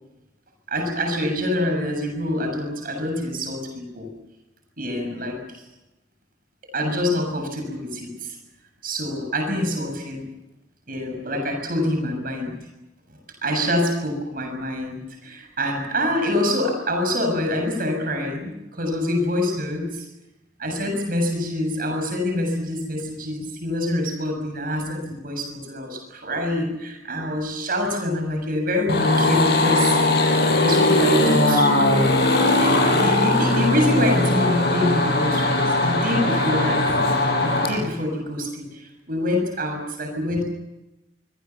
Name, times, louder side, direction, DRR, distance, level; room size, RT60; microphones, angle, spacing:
voice 1, 0.7-4.1 4.8-5.4 6.7-8.4 8.8-10.2 10.9-12.6 13.4-20.1 20.6-30.1 30.6-31.9 32.6-36.8 37.4-40.4, left 1 dB, 55° right, 3 dB, 7.1 m, -26 dB
sound 1, 28.9-37.7, left 2 dB, 65° left, 6.9 m, -19 dB
25.0 x 24.5 x 7.2 m, 0.97 s
head